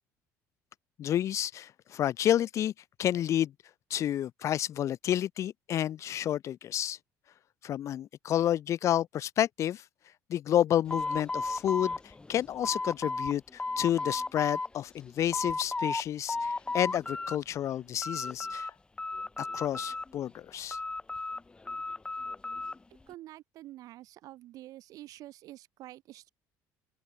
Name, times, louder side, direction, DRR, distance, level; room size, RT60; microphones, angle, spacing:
voice 1, 1.0-2.7 3.0-3.5 3.9-7.0 7.6-9.8 10.3-18.7 19.4-20.8, left 11 dB, 50° left, 1.1 m, -30 dB
sound 1, 10.9-13.3 13.6-14.7 15.1-16.0 16.3-17.4 17.7-18.7 19.0-20.2 20.7-22.8, left 3 dB, 15° left, 1.9 m, -34 dB
voice 2, 23.1-26.3, right 15 dB, 65° right, 7.6 m, -48 dB
cardioid pair, 125°, 7 cm